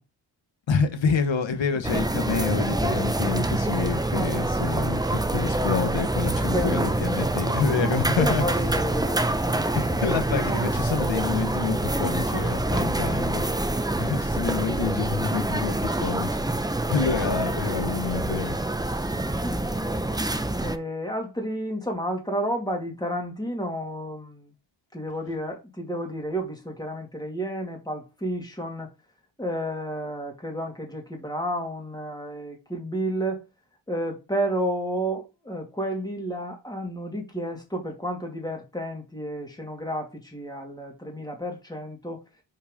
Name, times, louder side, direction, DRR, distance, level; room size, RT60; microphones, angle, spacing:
voice 1, 0.7-8.4 9.7-16.3 16.6-18.6 18.9-19.0, left 6 dB, 75° left, 1.4 m, -28 dB
sound 1, 1.8-20.8, right 2 dB, 10° right, 0.6 m, -26 dB
voice 2, 6.5-7.3 8.2-9.8 20.6-24.5 24.9-28.9 29.4-33.4 33.9-42.2, equal, 10° left, 2.4 m, -31 dB
5.6 x 4.7 x 5.2 m
wide cardioid pair, 95°, 46 cm